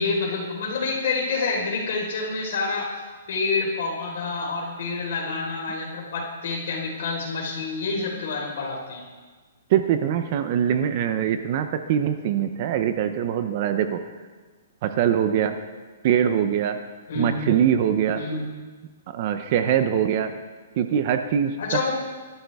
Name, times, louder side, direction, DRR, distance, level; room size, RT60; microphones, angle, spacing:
voice 1, 0.0-2.9 3.3-9.0 17.1-17.5 18.1-18.4 21.6-21.9, left 4 dB, 45° left, -2 dB, 4.2 m, -27 dB
voice 2, 9.7-14.0 14.8-15.6 16.0-16.8 17.2-18.2 19.1-20.4 20.8-21.9, right 9 dB, 30° right, 9 dB, 0.6 m, -23 dB
23.5 x 12.5 x 3.5 m, 1.4 s
hypercardioid pair, 180°, 0 cm